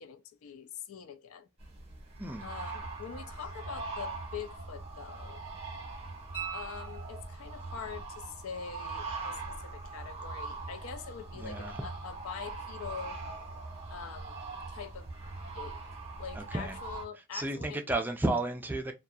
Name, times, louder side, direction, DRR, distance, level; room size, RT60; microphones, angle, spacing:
voice 1, 0.0-1.5 2.4-5.4 6.5-13.2 13.9-14.4 14.7-15.1 15.6-15.8 16.2-17.8, left 7 dB, 85° left, 0.4 m, -44 dB
sound 1, 1.6-17.0, right 3 dB, 25° right, 0.8 m, -41 dB
sound 2, 6.3-7.7 10.5-10.6, right 8 dB, 45° left, 1.3 m, -42 dB
voice 2, 11.3-11.7 16.3-16.8 17.3-18.9, right 2 dB, 10° right, 0.3 m, -32 dB
2.7 x 2.3 x 2.3 m
head